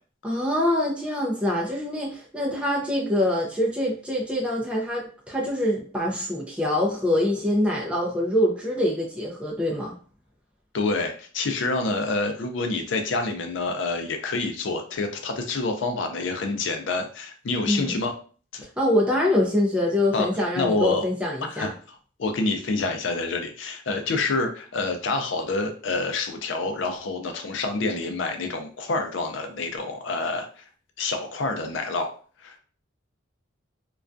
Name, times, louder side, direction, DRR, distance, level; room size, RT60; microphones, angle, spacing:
voice 1, 0.2-9.9 17.6-17.9 18.8-21.7, left 1 dB, 5° right, -3 dB, 0.4 m, -24 dB
voice 2, 10.7-18.2 18.5-18.7 20.1-20.3 20.6-21.1 21.5-30.6 31.0-32.6, left 3 dB, 65° left, 5 dB, 0.5 m, -27 dB
2.3 x 2.2 x 2.5 m, 0.41 s
head